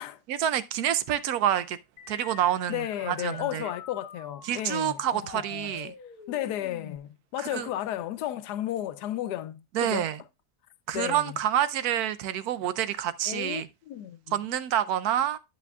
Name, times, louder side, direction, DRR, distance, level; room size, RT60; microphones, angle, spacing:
voice 1, 0.3-1.8 2.1-3.7 4.5-5.9 7.5-7.7 9.7-10.2 10.9-13.7 14.3-15.4, right 11 dB, 75° right, 1.1 m, -27 dB
sound 1, 2.0-7.0, left 8 dB, 70° left, 1.4 m, -46 dB
voice 2, 2.7-5.7 6.3-10.1 10.9-11.4 13.3-14.4, left 13 dB, 85° left, 1.2 m, -34 dB
9.8 x 8.2 x 2.3 m
omnidirectional pair, 1.7 m